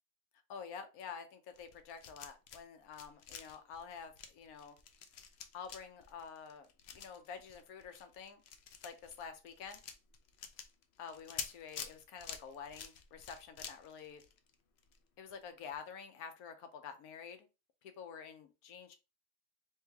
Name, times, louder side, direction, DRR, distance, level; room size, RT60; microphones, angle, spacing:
voice 1, 0.5-4.8 5.5-8.4 8.8-9.8 11.0-14.2 15.2-17.5 17.8-18.9, left 6 dB, 90° left, 8 dB, 1.2 m, -49 dB
sound 1, 1.5-2.6 2.9-15.0 15.3-15.4 15.7-15.8, left 7 dB, 60° left, 0.7 m, -49 dB
3.2 x 3.2 x 3.4 m, 0.30 s
omnidirectional pair, 1.5 m